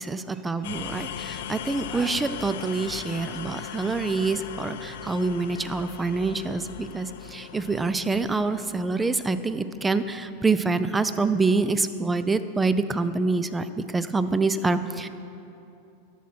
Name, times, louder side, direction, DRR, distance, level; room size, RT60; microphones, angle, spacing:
voice 1, 0.0-15.1, right 3 dB, 15° right, 12 dB, 0.4 m, -26 dB
sound 1, 0.6-10.4, left 10 dB, 75° left, 0.4 m, -39 dB
13.0 x 4.3 x 5.9 m, 2.7 s
hypercardioid pair, 115°, 0 cm